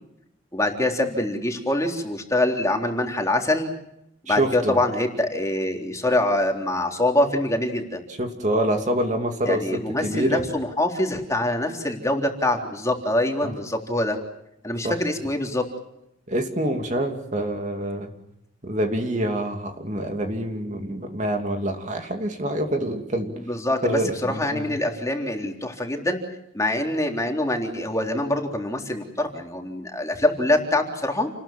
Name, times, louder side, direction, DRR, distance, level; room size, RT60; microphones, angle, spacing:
voice 1, 0.5-3.7 4.3-8.0 9.5-14.2 14.6-15.6 23.4-26.2 26.5-31.3, left 1 dB, 15° left, 2 dB, 3.7 m, -24 dB
voice 2, 4.3-4.8 8.2-10.4 13.4-13.5 14.8-15.0 16.3-18.1 18.6-23.4 23.8-24.8, right 1 dB, 35° right, 4 dB, 2.7 m, -26 dB
30.0 x 20.5 x 7.6 m, 0.80 s
head